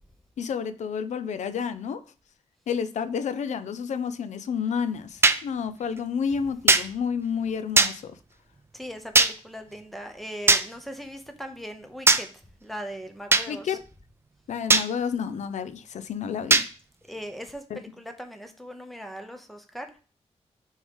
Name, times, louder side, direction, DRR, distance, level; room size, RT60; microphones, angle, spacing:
voice 1, 0.4-2.0 2.7-8.2 13.5-13.8 14.5-16.7 17.7-17.8, left 6 dB, 80° left, 0.6 m, -30 dB
sound 1, 5.2-5.4 6.7-6.8 7.8-7.9 9.1-9.3 10.5-10.6 12.1-12.2 13.3-13.5 14.7-14.9 16.5-16.7, right 3 dB, 20° right, 0.4 m, -17 dB
voice 2, 8.7-12.3 12.6-13.8 17.1-19.9, equal, ahead, 0.8 m, -39 dB
6.2 x 3.7 x 5.4 m
wide cardioid pair, 165°, 12 cm